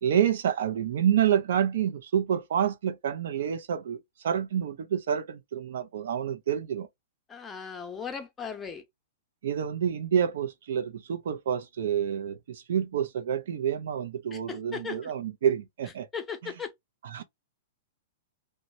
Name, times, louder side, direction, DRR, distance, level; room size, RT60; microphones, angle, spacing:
voice 1, 0.0-6.9 9.4-16.1 16.4-16.5 17.0-17.2, right 9 dB, 60° right, 0.4 m, -28 dB
voice 2, 7.3-8.8 14.3-15.1 16.1-16.7, left 6 dB, 15° left, 0.7 m, -37 dB
2.9 x 2.1 x 2.6 m
figure-of-eight pair, 105°, 0 cm